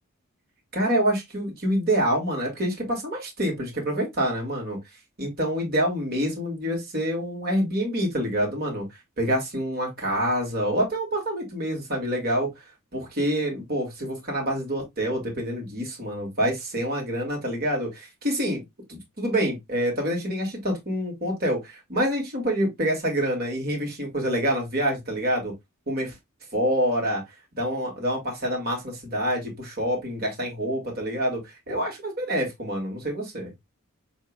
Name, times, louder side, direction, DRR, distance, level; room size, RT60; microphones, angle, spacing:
voice 1, 0.7-4.8 5.2-8.9 9.2-12.5 12.9-18.6 18.9-25.5 25.9-26.1 26.5-27.2 27.6-33.5, equal, 45° right, 2.2 m, -27 dB
7.0 x 2.9 x 2.3 m
head